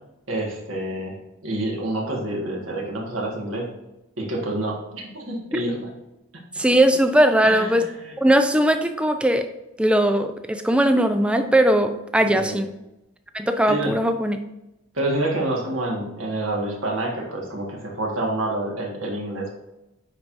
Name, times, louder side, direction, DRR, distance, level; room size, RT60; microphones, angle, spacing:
voice 1, 0.3-1.2 1.4-3.7 4.2-5.9 7.4-8.1 12.2-12.6 13.7-14.0 14.9-19.5, right 1 dB, 65° right, -1 dB, 1.7 m, -27 dB
voice 2, 6.6-7.9 8.2-9.5 9.8-12.7 13.3-14.4, right 1 dB, 5° right, 7 dB, 0.4 m, -19 dB
9.6 x 4.7 x 2.7 m, 0.96 s
head